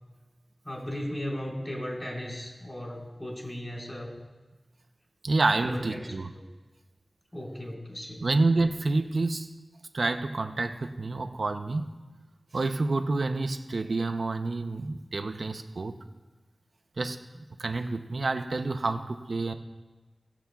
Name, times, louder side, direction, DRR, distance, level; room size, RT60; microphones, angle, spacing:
voice 1, 0.6-4.1 5.6-6.4 7.3-8.2, equal, 25° left, -3 dB, 3.3 m, -36 dB
voice 2, 5.2-6.3 8.2-9.5 9.9-11.8 12.5-16.0 17.0-19.5, right 3 dB, 75° right, 6 dB, 0.6 m, -28 dB
19.5 x 7.0 x 2.3 m, 1.2 s
wide cardioid pair, 65°, 0 cm